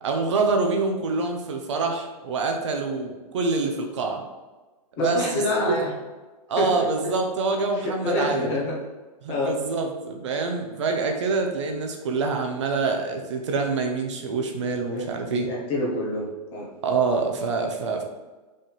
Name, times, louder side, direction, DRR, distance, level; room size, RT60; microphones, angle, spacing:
voice 1, 0.0-4.2 5.0-5.8 6.5-8.5 9.2-15.5 16.8-18.0, right 4 dB, 50° right, 3 dB, 0.8 m, -26 dB
voice 2, 5.0-5.9 6.6-6.9 7.8-8.8 9.3-9.6 14.6-16.7, left 1 dB, 20° left, -3 dB, 1.0 m, -27 dB
5.4 x 3.5 x 5.6 m, 1.2 s
hypercardioid pair, 175°, 20 cm